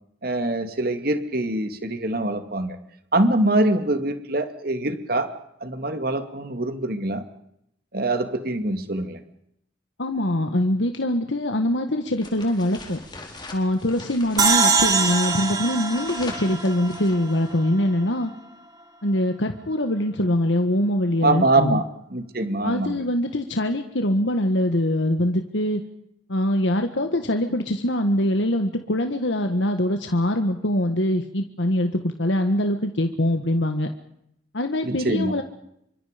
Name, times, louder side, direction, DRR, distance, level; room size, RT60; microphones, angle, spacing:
voice 1, 0.2-2.8 3.1-5.3 5.6-7.2 7.9-9.2 21.2-21.8 22.1-23.0 34.8-35.3, right 2 dB, 50° right, 8 dB, 2.4 m, -24 dB
voice 2, 10.0-13.0 13.5-18.3 19.0-21.8 22.6-25.8 26.3-33.9 34.5-35.4, left 1 dB, 80° left, 6 dB, 1.6 m, -23 dB
sound 1, 12.2-17.7, left 3 dB, 25° left, 4.3 m, -41 dB
sound 2, 14.4-17.7, right 4 dB, 20° right, 2.9 m, -23 dB
27.0 x 24.5 x 5.2 m, 0.77 s
head